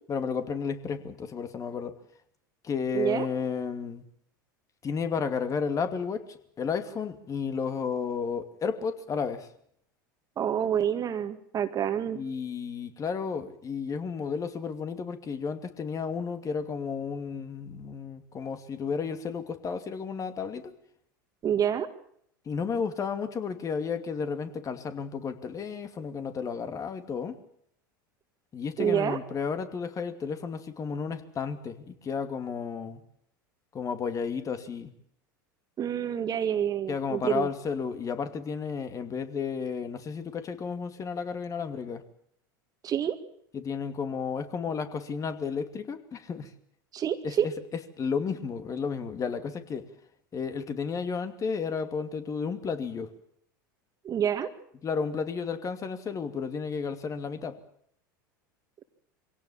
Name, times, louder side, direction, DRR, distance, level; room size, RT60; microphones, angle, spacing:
voice 1, 0.1-2.0 2.6-4.0 4.8-9.5 12.1-20.7 22.5-27.4 28.5-33.0 33.7-34.9 36.9-42.0 43.5-46.5 47.2-49.9 50.3-53.1 54.8-57.6, left 6 dB, 30° left, 8 dB, 2.6 m, -32 dB
voice 2, 2.9-3.3 10.4-12.2 21.4-21.9 28.8-29.2 35.8-37.5 42.8-43.2 46.9-47.5 54.0-54.5, right 9 dB, 35° right, 8 dB, 2.0 m, -27 dB
24.5 x 17.5 x 7.4 m, 0.68 s
hypercardioid pair, 90°, 11 cm